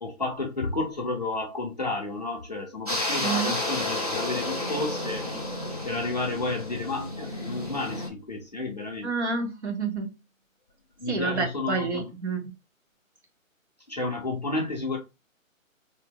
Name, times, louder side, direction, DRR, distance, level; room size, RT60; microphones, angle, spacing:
voice 1, 0.0-5.3 5.8-9.1 11.0-12.1 13.9-15.0, left 2 dB, 30° left, 0.6 m, -31 dB
sound 1, 2.9-8.1, left 1 dB, 30° right, 0.5 m, -31 dB
voice 2, 3.2-3.5 9.0-10.1 11.1-12.5, right 4 dB, 55° right, 1.0 m, -29 dB
4.0 x 2.6 x 2.2 m
hypercardioid pair, 175°, 41 cm